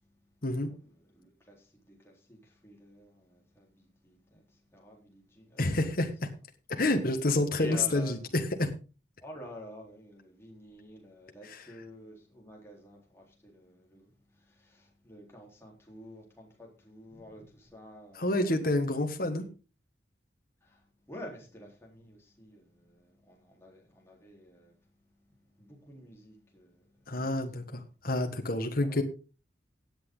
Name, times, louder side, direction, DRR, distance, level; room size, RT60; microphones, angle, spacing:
voice 1, 0.5-5.7 7.6-8.1 9.2-18.8 20.6-24.7 25.6-27.6 28.8-29.0, equal, 15° left, 4.0 m, -50 dB
voice 2, 5.6-6.3 6.7-8.7 11.4-11.7 18.1-19.5 27.1-29.0, left 2 dB, 50° left, 1.6 m, -29 dB
17.0 x 8.3 x 3.9 m
head